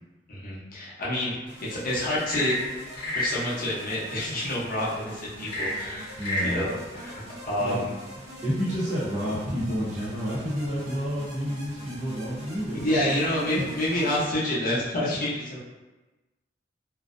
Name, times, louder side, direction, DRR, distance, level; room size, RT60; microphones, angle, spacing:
voice 1, 0.3-2.6 3.0-6.2 6.4-7.9 12.7-15.6, left 1 dB, 50° left, -6 dB, 0.6 m, -28 dB
sound 1, 1.5-14.3, equal, 75° right, 0.8 m, -43 dB
Frog / Percussion / Wood, 2.1-3.4 5.4-6.6, left 1 dB, 25° left, 0.9 m, -29 dB
voice 2, 6.2-6.6 7.6-7.7 8.4-13.2 13.5-13.6, equal, 45° right, -7 dB, 0.8 m, -30 dB
2.5 x 2.0 x 2.4 m, 1.1 s
head